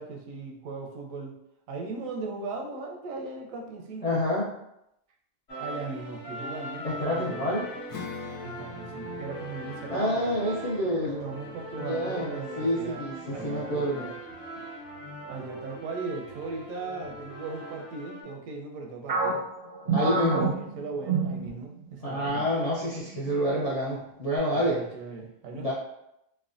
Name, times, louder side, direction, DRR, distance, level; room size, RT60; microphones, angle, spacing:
voice 1, 0.0-1.3 1.7-4.2 5.6-7.5 8.4-10.3 11.0-13.0 13.3-14.1 15.3-19.4 19.8-22.5 24.5-25.7, right 3 dB, 80° right, 1 dB, 1.0 m, -38 dB
voice 2, 4.0-4.5 6.8-7.7 9.9-11.2 11.7-14.1 19.9-20.5 22.0-24.8 25.5-25.7, equal, 65° left, -8 dB, 0.3 m, -28 dB
sound 1, 5.5-18.2, right 1 dB, 45° left, 0.9 m, -40 dB
Acoustic guitar / Strum, 7.9-13.9, left 7 dB, 85° left, 1.0 m, -46 dB
sound 2, 19.1-21.9 22.3-22.5 23.1-23.6, right 4 dB, 60° right, 0.6 m, -29 dB
3.2 x 2.1 x 2.4 m, 0.81 s
omnidirectional pair, 1.4 m